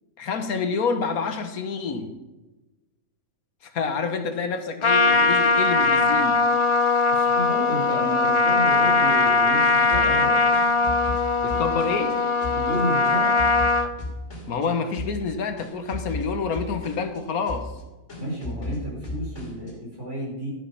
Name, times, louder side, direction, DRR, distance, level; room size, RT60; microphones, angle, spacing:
voice 1, 0.2-2.1 3.6-6.4 11.4-12.2 14.5-17.7, left 5 dB, 85° left, 8 dB, 1.6 m, -28 dB
Trumpet, 4.8-13.9, left 3 dB, 35° left, 0.5 m, -20 dB
voice 2, 7.1-10.4 12.5-13.3 18.2-20.5, equal, 55° right, -4 dB, 5.8 m, -31 dB
sound 1, 9.9-12.1 12.4-14.7 14.9-15.3 15.6-17.2 17.5-17.8 18.1-19.7, left 2 dB, 55° left, 3.3 m, -35 dB
12.5 x 8.5 x 5.8 m, 1.1 s
omnidirectional pair, 1.5 m